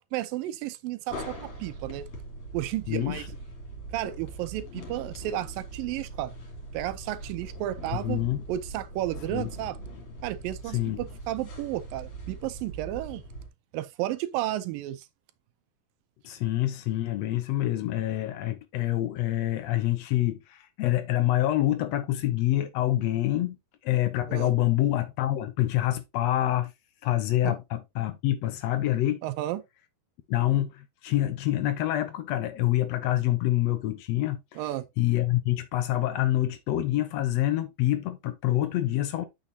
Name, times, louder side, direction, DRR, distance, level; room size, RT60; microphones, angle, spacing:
voice 1, 0.1-2.0 2.5-3.2 3.9-6.3 6.7-8.2 8.5-9.8 10.2-13.2 13.7-15.1 24.3-24.5 27.4-27.5 29.2-29.6 34.6-34.9, right 14 dB, 80° right, 2.3 m, -32 dB
sound 1, 1.1-13.5, right 2 dB, 40° left, 3.4 m, -41 dB
voice 2, 2.9-3.3 8.0-8.4 9.3-9.5 10.7-11.0 16.2-23.6 23.8-26.7 27.0-29.2 30.3-34.6 35.0-39.3, left 14 dB, 85° left, 1.4 m, -26 dB
9.0 x 6.2 x 2.7 m
omnidirectional pair, 4.1 m